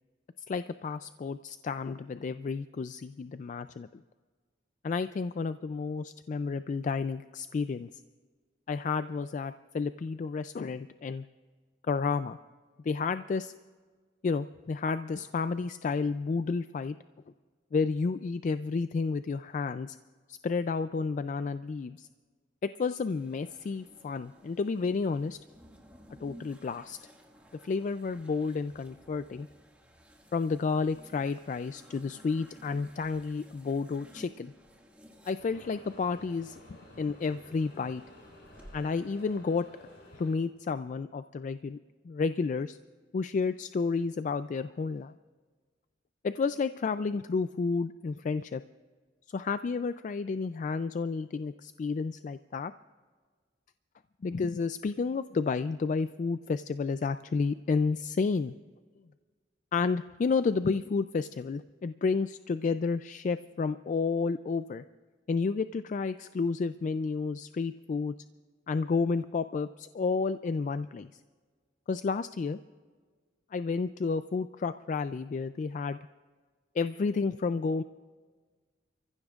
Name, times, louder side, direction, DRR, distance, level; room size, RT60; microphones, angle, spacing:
voice 1, 0.5-4.0 4.8-7.9 8.7-11.3 11.9-12.4 12.8-13.5 14.2-17.0 17.7-20.0 20.3-22.1 22.6-25.4 26.2-27.0 27.6-29.5 30.3-34.5 35.3-36.6 37.0-38.0 38.7-39.7 40.2-41.8 42.0-42.8 43.1-45.2 46.2-48.6 49.3-52.7 54.2-58.5 59.7-64.8 65.3-68.1 68.7-71.1 71.9-72.6 73.5-76.0 76.8-77.8, left 4 dB, 45° left, 12 dB, 0.3 m, -31 dB
sound 1, 23.0-38.7, equal, 10° right, 1.8 m, -56 dB
sound 2, 35.4-40.4, left 1 dB, 65° left, 3.8 m, -53 dB
30.0 x 15.0 x 2.4 m, 1.5 s
head